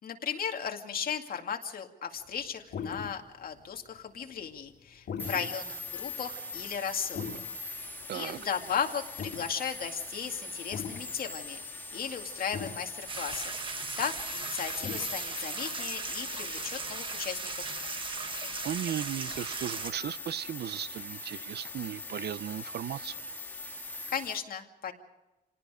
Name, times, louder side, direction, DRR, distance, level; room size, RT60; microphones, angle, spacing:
voice 1, 0.0-11.6 11.9-13.5 14.0-17.6 24.1-24.9, left 7 dB, 60° left, 2.3 m, -36 dB
sound 1, 2.4-2.5 2.7-3.3 3.6-4.2 4.5-8.2 8.6-8.7 9.1-10.4 10.7-11.0 11.7-11.8 12.2-12.3 12.5-15.0, left 6 dB, 80° left, 2.8 m, -39 dB
sound 2, 5.2-24.4, left 2 dB, 10° left, 1.8 m, -42 dB
sound 3, 13.1-19.9, right 4 dB, 30° right, 1.4 m, -38 dB
voice 2, 18.6-23.1, right 10 dB, 70° right, 0.6 m, -36 dB
28.5 x 18.5 x 5.0 m
wide cardioid pair, 160°, 17 cm